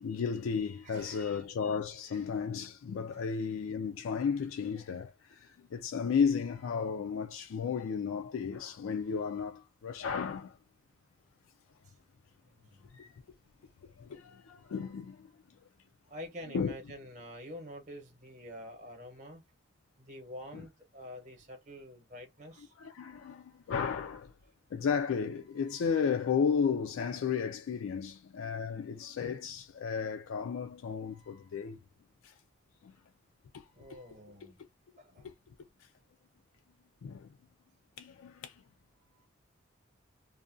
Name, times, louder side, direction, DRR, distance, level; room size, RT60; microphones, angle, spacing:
voice 1, 0.0-10.6 12.9-13.1 14.0-15.3 16.5-16.8 20.5-20.6 22.8-24.3 24.7-31.8 32.2-32.3 32.8-32.9 33.5-33.6 33.9-34.0 35.2-35.3 37.0-37.3 38.0-38.5, left 6 dB, 85° left, 0.4 m, -34 dB
voice 2, 0.8-1.5 2.1-2.3 3.1-3.3 11.8-11.9 12.5-12.9 16.1-19.4 20.0-22.8 33.7-34.6 35.0-35.3, equal, 35° right, 0.8 m, -47 dB
2.4 x 2.2 x 2.4 m
head